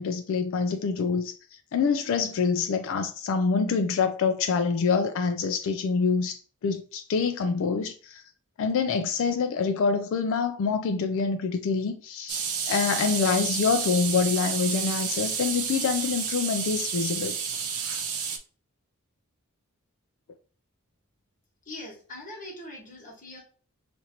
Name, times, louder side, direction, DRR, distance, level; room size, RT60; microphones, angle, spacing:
voice 1, 0.0-1.4 1.7-8.2 8.6-17.4, left 5 dB, 60° left, 0.3 m, -26 dB
sound 1, 12.3-18.4, right 6 dB, 80° right, 0.6 m, -30 dB
voice 2, 21.6-23.4, left 1 dB, 40° left, 1.4 m, -41 dB
4.3 x 2.5 x 2.8 m
head